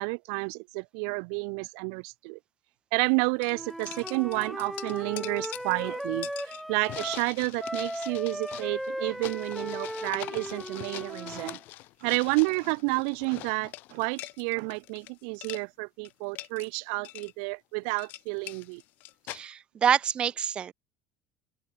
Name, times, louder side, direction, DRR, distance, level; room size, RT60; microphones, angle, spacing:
voice 1, 0.0-2.4 2.9-11.6 12.0-18.8, right 40 dB or more, 85° right, 0.7 m, -30 dB
sound 1, 3.0-3.1 3.4-15.1 15.3-15.6 16.0-16.7 17.0-17.3 17.8-19.4, left 19 dB, 55° left, 5.7 m, -43 dB
Wind instrument woodwind instrument, 3.5-7.3 7.6-11.6, equal, ahead, 2.3 m, -37 dB
voice 2, 19.3-20.7, right 8 dB, 25° right, 2.5 m, -26 dB
open air
cardioid pair, 165°, 4 cm